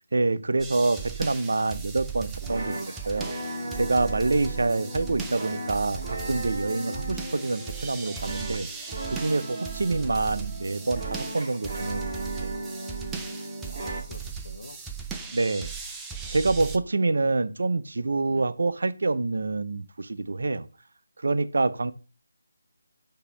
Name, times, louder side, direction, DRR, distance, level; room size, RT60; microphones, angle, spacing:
voice 1, 0.1-2.8 3.1-3.3 3.7-8.7 9.1-12.1 12.4-12.6 15.3-15.7 16.3-20.7 21.2-21.9, right 3 dB, 60° right, 0.5 m, -26 dB
sound 1, 0.6-16.8, right 6 dB, 5° right, 0.5 m, -38 dB
sound 2, 2.4-14.0, right 1 dB, 30° right, 1.7 m, -37 dB
voice 2, 5.2-5.7 13.7-14.8 16.2-16.6 18.3-18.5, left 2 dB, 60° left, 0.8 m, -47 dB
6.7 x 2.8 x 5.8 m
figure-of-eight pair, 155°, 0 cm